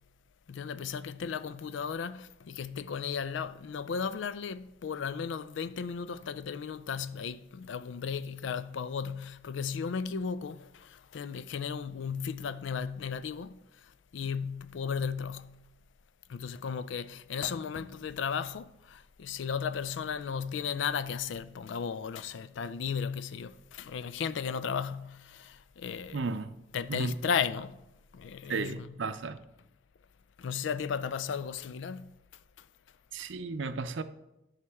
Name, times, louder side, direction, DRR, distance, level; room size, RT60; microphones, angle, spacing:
voice 1, 0.5-10.6 11.1-13.5 14.1-15.5 16.3-26.2 26.7-27.7 28.1-28.9 30.4-32.1, left 6 dB, 75° left, 0.4 m, -35 dB
voice 2, 26.1-26.5 26.9-27.2 28.5-29.4 33.1-34.0, right 4 dB, 75° right, 0.5 m, -34 dB
11.0 x 5.8 x 3.5 m
head